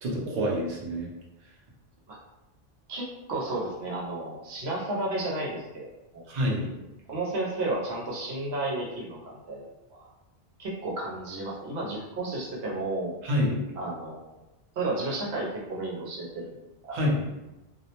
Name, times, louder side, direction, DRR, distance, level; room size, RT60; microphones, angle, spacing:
voice 1, 0.0-1.1 6.3-6.7 13.2-13.6 16.9-17.3, equal, 50° right, -2 dB, 0.6 m, -27 dB
voice 2, 2.9-5.9 6.1-6.3 7.1-10.1 10.6-13.1 13.8-14.4 14.8-16.5 16.8-17.0, right 2 dB, 90° right, -3 dB, 0.9 m, -32 dB
2.3 x 2.0 x 2.8 m, 0.97 s
omnidirectional pair, 1.1 m